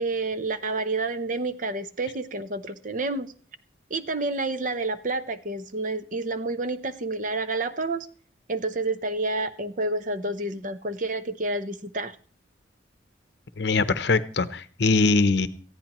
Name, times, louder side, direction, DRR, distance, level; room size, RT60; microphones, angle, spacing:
voice 1, 0.0-3.3 3.9-8.1 8.5-12.2, right 2 dB, 40° right, 11 dB, 0.7 m, -29 dB
voice 2, 13.6-15.5, left 3 dB, 55° left, 13 dB, 0.7 m, -22 dB
19.0 x 14.0 x 3.0 m, 0.42 s
head